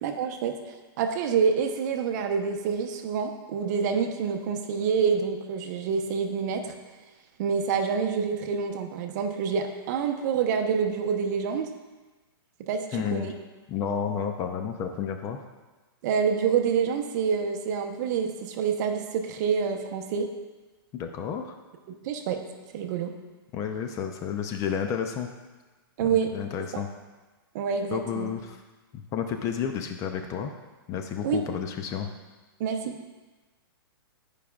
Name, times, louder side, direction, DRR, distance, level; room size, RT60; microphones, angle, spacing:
voice 1, 0.0-0.6 1.0-6.7 7.4-11.7 12.7-12.8 13.1-13.3 16.0-20.3 21.9-22.4 22.7-23.1 26.0-26.3 26.7-26.8 27.5-28.3 31.2-31.4 32.6-33.0, right 6 dB, 45° right, 6 dB, 0.7 m, -27 dB
voice 2, 12.7-13.3 13.7-15.4 20.9-21.5 23.5-25.3 26.1-26.9 27.9-28.6 28.9-30.6 30.9-32.1, left 7 dB, 25° left, 5 dB, 0.4 m, -31 dB
10.5 x 4.9 x 2.3 m, 1.2 s
hypercardioid pair, 140°, 13 cm